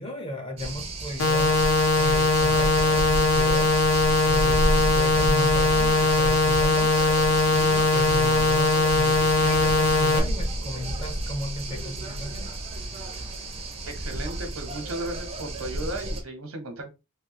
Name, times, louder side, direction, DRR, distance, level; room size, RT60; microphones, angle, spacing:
voice 1, 0.0-1.6 1.9-3.8 4.2-7.0 7.5-12.6, left 1 dB, 25° left, 0.7 m, -35 dB
sound 1, 0.6-16.2, right 1 dB, 30° right, 0.5 m, -31 dB
sound 2, 1.2-10.2, left 2 dB, 65° left, 0.7 m, -21 dB
voice 2, 13.9-16.9, right 1 dB, 80° right, 1.0 m, -35 dB
3.1 x 2.3 x 2.9 m
head